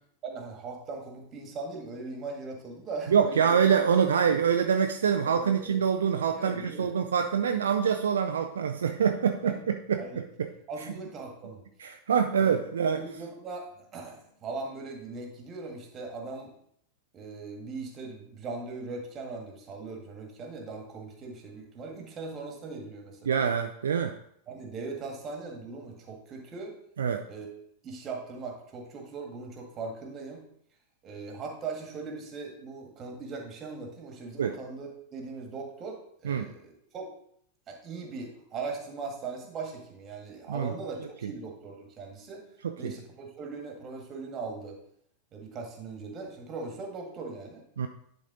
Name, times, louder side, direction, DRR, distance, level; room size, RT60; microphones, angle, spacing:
voice 1, 0.2-3.6 5.2-5.8 6.3-6.9 9.4-9.5 10.0-10.2 10.7-11.6 12.4-12.6 12.8-16.5 17.1-23.3 24.5-26.7 27.3-27.5 27.8-30.4 31.0-37.1 37.7-42.4 42.8-44.8 45.3-47.6, right 4 dB, 30° right, 2 dB, 1.8 m, -39 dB
voice 2, 3.1-10.5 11.8-13.0 23.3-24.2 27.0-27.2 34.4-34.6 36.2-36.5 40.5-40.7 41.2-41.3 42.8-42.9 47.8-47.9, right 7 dB, 65° right, 6 dB, 0.4 m, -25 dB
10.5 x 4.1 x 3.8 m, 0.68 s
figure-of-eight pair, 90°, 0 cm